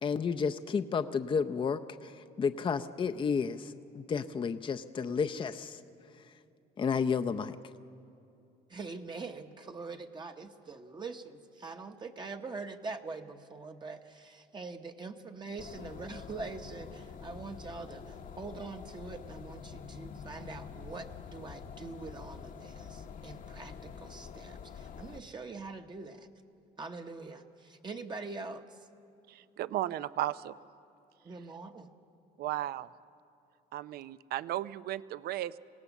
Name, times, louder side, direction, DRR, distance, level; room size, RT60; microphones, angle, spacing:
voice 1, 0.0-5.8 6.8-7.6, left 6 dB, 30° left, 9 dB, 0.6 m, -32 dB
voice 2, 8.7-26.3 26.8-28.8 31.2-31.9, right 3 dB, 25° right, 4 dB, 1.0 m, -43 dB
sound 1, 15.6-25.2, left 6 dB, 50° left, 1.0 m, -46 dB
voice 3, 29.3-30.6 32.4-32.9 33.7-35.6, right 14 dB, 65° right, 16 dB, 0.6 m, -35 dB
25.5 x 17.0 x 7.2 m, 2.7 s
cardioid pair, 110°, 17 cm